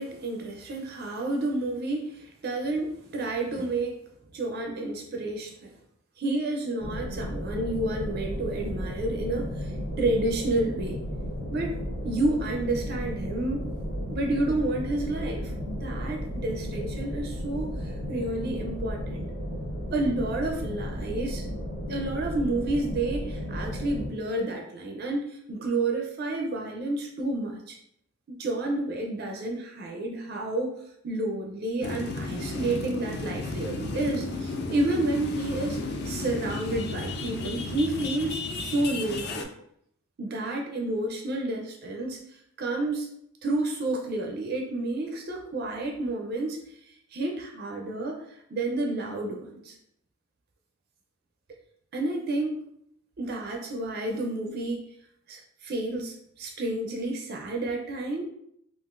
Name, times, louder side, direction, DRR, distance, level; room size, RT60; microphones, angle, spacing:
voice 1, 0.0-4.0 4.3-5.7 6.2-11.0 11.5-11.8 12.0-13.7 14.1-19.3 19.9-21.4 21.9-27.8 28.3-30.7 31.0-35.8 36.0-39.5 40.2-42.2 42.6-43.1 43.4-48.2 48.5-49.8 51.9-52.6 53.2-54.8 55.3-58.2, right 2 dB, 45° right, 1 dB, 0.4 m, -30 dB
sound 1, 6.8-24.1, equal, 75° left, 0.8 m, -34 dB
sound 2, 31.8-39.4, left 3 dB, 50° left, 0.4 m, -33 dB
3.7 x 2.4 x 2.4 m, 0.72 s
head